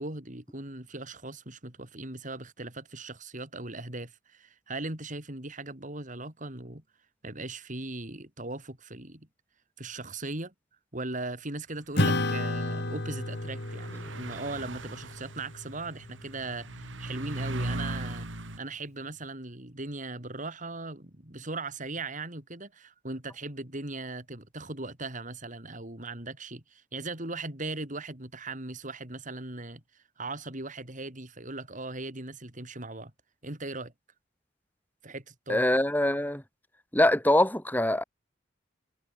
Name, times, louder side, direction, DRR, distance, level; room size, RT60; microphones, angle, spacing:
voice 1, 0.0-6.8 7.2-9.3 9.8-10.5 10.9-18.3 18.6-29.8 30.2-33.1 33.4-33.9 35.0-35.6, right 2 dB, 40° right, 4.2 m, -39 dB
Acoustic guitar / Strum, 12.0-16.7, left 2 dB, 60° left, 2.7 m, -32 dB
sound 1, 12.9-13.0 13.5-18.6, right 2 dB, 80° right, 2.3 m, -38 dB
voice 2, 35.5-36.4 36.9-38.0, left 1 dB, 10° left, 3.7 m, -23 dB
head